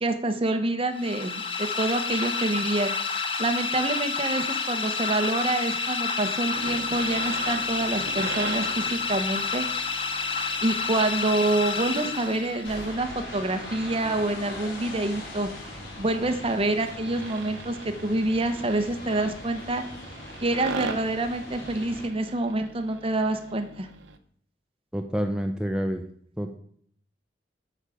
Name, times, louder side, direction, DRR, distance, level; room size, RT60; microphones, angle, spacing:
voice 1, 0.0-2.9 3.4-9.7 10.6-15.5 16.0-19.8 20.4-23.9, right 2 dB, 30° right, 6 dB, 0.9 m, -27 dB
sound 1, 0.9-12.8, left 5 dB, 30° left, 0.9 m, -29 dB
sound 2, 6.5-24.2, right 4 dB, 75° right, 0.8 m, -41 dB
sound 3, 12.6-22.1, left 2 dB, 90° left, 4.3 m, -41 dB
voice 2, 24.9-26.0 26.4-26.6, equal, 5° right, 4 dB, 0.5 m, -28 dB
8.3 x 4.8 x 6.9 m, 0.63 s
head